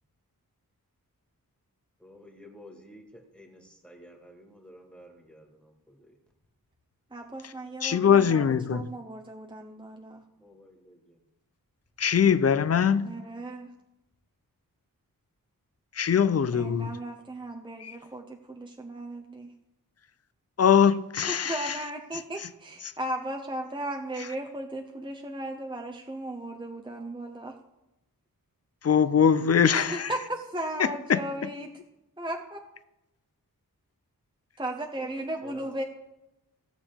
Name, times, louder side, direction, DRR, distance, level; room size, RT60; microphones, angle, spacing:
voice 1, 2.0-6.2 10.4-11.2 29.0-30.0 35.4-35.7, left 1 dB, 5° left, 2 dB, 1.8 m, -52 dB
voice 2, 7.1-10.2 13.0-13.7 16.5-19.5 21.3-27.6 29.7-31.8 32.2-32.7 34.6-35.8, right 1 dB, 15° right, 2 dB, 0.7 m, -36 dB
voice 3, 7.8-8.9 12.0-13.1 15.9-16.9 17.8-18.0 20.6-21.8 28.8-30.1 30.8-31.2, left 7 dB, 45° left, 13 dB, 0.5 m, -22 dB
16.5 x 6.9 x 3.6 m, 0.94 s
wide cardioid pair, 90°, 36 cm